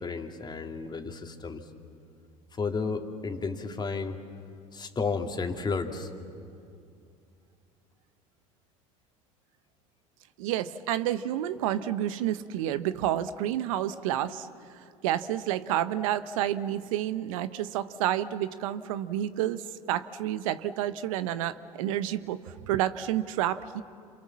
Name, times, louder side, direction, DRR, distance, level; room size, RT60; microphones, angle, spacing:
voice 1, 0.0-1.7 2.5-4.2 4.7-6.1, left 4 dB, 25° left, 4 dB, 2.6 m, -32 dB
voice 2, 10.4-14.5 15.0-23.8, right 12 dB, 75° right, 13 dB, 0.9 m, -29 dB
27.5 x 27.5 x 7.4 m, 2.4 s
hypercardioid pair, 75°, 18 cm